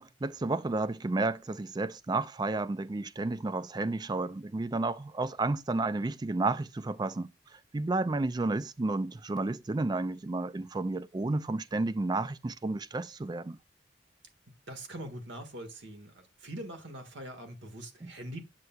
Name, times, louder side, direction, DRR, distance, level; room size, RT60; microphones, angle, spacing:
voice 1, 0.0-7.3 7.7-13.6 18.0-18.1, right 2 dB, 20° right, 0.4 m, -31 dB
voice 2, 14.7-18.5, right 1 dB, 75° right, 1.6 m, -43 dB
7.9 x 7.4 x 2.2 m
head